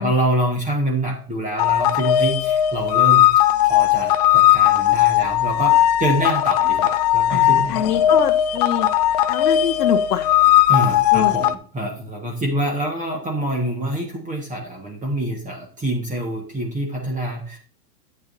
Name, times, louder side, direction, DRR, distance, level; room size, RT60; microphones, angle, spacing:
voice 1, 0.0-3.2 3.6-7.7 10.7-17.6, right 1 dB, 15° right, 1 dB, 1.5 m, -25 dB
sound 1, 1.6-11.5, left 12 dB, 30° left, 0.3 m, -17 dB
voice 2, 7.3-8.9 9.3-10.3 11.1-11.4, left 8 dB, 75° left, 6 dB, 0.9 m, -24 dB
10.5 x 8.7 x 2.7 m, 0.43 s
hypercardioid pair, 115°, 48 cm